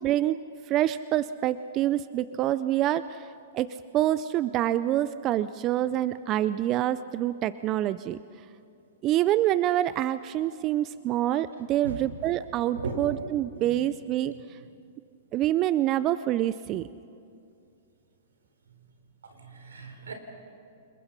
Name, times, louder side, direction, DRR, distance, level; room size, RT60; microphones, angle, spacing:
voice 1, 0.0-8.2 9.0-14.6 15.3-16.9, right 13 dB, 35° right, 15 dB, 0.5 m, -26 dB
voice 2, 12.7-13.2 13.6-13.8 19.4-20.1, right 3 dB, 90° right, 6 dB, 3.7 m, -37 dB
28.5 x 21.5 x 5.7 m, 2.5 s
hypercardioid pair, 125°, 0 cm